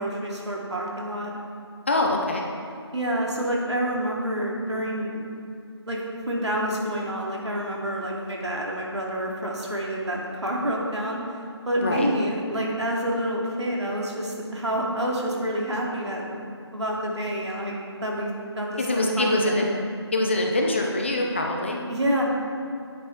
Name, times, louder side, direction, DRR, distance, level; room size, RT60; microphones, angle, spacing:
voice 1, 0.0-1.3 2.9-5.2 5.9-6.0 6.3-11.2 11.7-16.3 16.7-19.7 21.9-22.2, right 1 dB, 75° right, -3 dB, 2.6 m, -28 dB
voice 2, 1.9-2.4 11.8-12.1 18.8-19.7 20.1-21.8, left 1 dB, 25° left, 0 dB, 0.7 m, -24 dB
9.6 x 8.1 x 4.4 m, 2.6 s
figure-of-eight pair, 165°, 15 cm